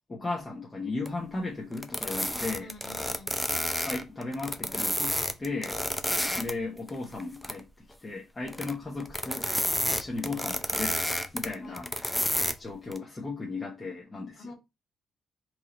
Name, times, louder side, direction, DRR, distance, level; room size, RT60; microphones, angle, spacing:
voice 1, 0.1-2.7 3.8-5.8 6.3-9.5 9.9-11.0 11.3-11.9 12.6-14.5, left 3 dB, 25° left, 1.1 m, -36 dB
sound 1, 1.1-1.2 1.7-6.5 6.9-7.6 8.5-8.7 9.0-12.5 12.9-13.0, equal, 5° left, 0.5 m, -30 dB
voice 2, 2.6-3.3 6.1-6.4 11.6-11.8 14.4-14.5, left 3 dB, 60° left, 1.7 m, -48 dB
3.2 x 2.7 x 3.8 m
cardioid pair, 90°, 0 cm